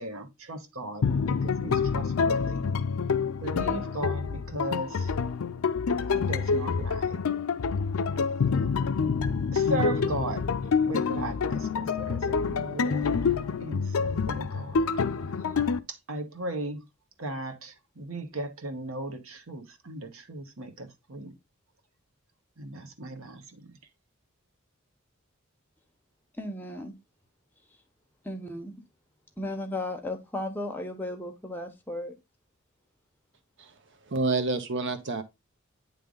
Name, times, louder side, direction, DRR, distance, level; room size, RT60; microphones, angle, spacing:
voice 1, 0.0-2.7 3.4-5.1 6.1-7.3 8.4-8.8 9.5-10.5 10.9-13.2 13.6-14.9 15.4-15.5 15.9-16.8 17.2-21.4 22.6-23.8, right 1 dB, 75° right, 1.3 m, -37 dB
sound 1, 1.0-15.8, left 5 dB, 85° left, 0.5 m, -27 dB
voice 2, 26.4-27.0 28.2-28.8 29.4-32.1, left 1 dB, 10° left, 1.1 m, -35 dB
voice 3, 34.1-35.2, right 3 dB, 60° right, 0.8 m, -27 dB
9.1 x 3.4 x 3.8 m
head